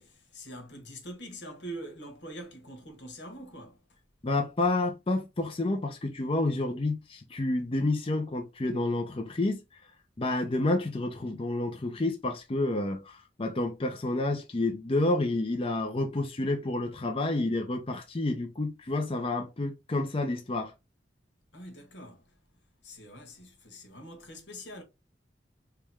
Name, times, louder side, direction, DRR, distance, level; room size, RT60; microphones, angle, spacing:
voice 1, 0.0-3.8 21.5-22.3 22.8-24.8, equal, 80° left, 1.5 m, -44 dB
voice 2, 4.2-9.6 10.2-20.7, left 2 dB, 30° left, 0.6 m, -29 dB
3.4 x 3.0 x 3.4 m
head